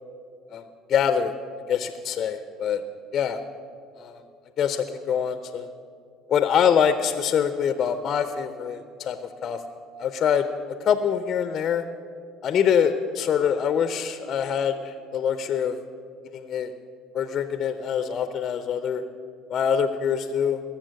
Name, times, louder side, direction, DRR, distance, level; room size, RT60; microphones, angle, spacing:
voice 1, 0.9-1.3 1.7-2.8 3.1-3.4 4.0-4.2 4.6-5.7 6.3-9.6 10.0-10.5 10.8-11.8 12.4-15.8 16.2-16.7 17.1-19.0 19.5-20.6, left 8 dB, 50° left, 10 dB, 0.7 m, -24 dB
21.0 x 7.2 x 6.5 m, 2.4 s
hypercardioid pair, 70°, 0 cm